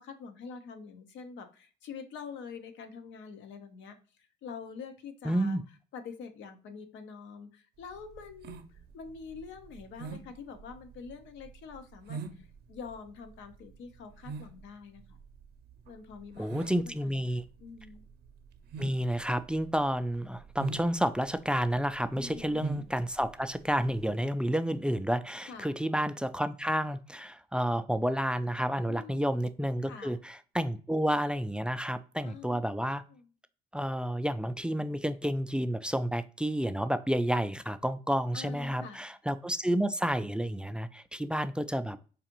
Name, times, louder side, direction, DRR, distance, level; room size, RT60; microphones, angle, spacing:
voice 1, 0.0-4.0 4.4-5.6 5.9-15.2 15.9-18.0 22.2-22.6 25.5-25.8 28.9-29.4 29.8-30.2 32.2-32.7 33.1-33.3 38.3-39.1, left 5 dB, 70° left, 7 dB, 0.8 m, -46 dB
voice 2, 5.2-5.6 16.4-17.4 18.8-33.0 33.7-42.0, equal, 5° right, 12 dB, 0.3 m, -30 dB
sound 1, 7.8-24.2, right 4 dB, 55° right, 0.6 m, -43 dB
4.8 x 2.5 x 2.9 m, 0.38 s
supercardioid pair, 65°, 20 cm